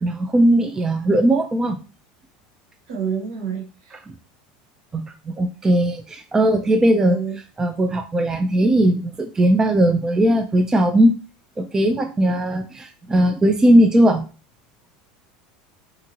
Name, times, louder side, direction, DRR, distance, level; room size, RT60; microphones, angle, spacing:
voice 1, 0.0-1.8 4.9-7.2 7.6-11.1 11.6-14.2, right 1 dB, 15° right, 6 dB, 0.3 m, -18 dB
voice 2, 2.9-4.0 7.0-7.4, right 7 dB, 75° right, 2 dB, 0.9 m, -29 dB
2.7 x 2.6 x 2.8 m, 0.36 s
supercardioid pair, 110°, 4 cm